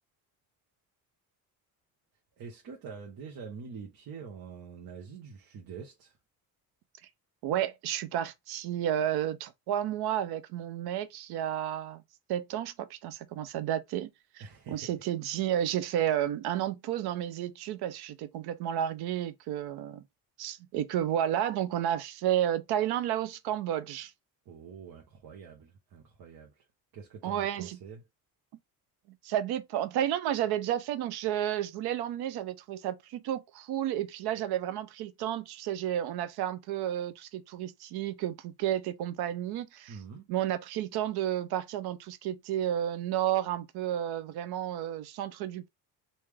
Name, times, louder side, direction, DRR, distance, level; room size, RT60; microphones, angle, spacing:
voice 1, 2.4-6.2 14.4-14.9 24.4-26.6 26.9-28.0 39.9-40.3, right 6 dB, 65° right, 1.1 m, -45 dB
voice 2, 7.4-12.0 12.3-14.1 14.3-20.0 20.4-24.1 27.2-27.8 29.2-40.0 40.3-45.7, right 11 dB, 85° right, 0.7 m, -31 dB
3.4 x 2.8 x 3.2 m
cardioid pair, 90°, 37 cm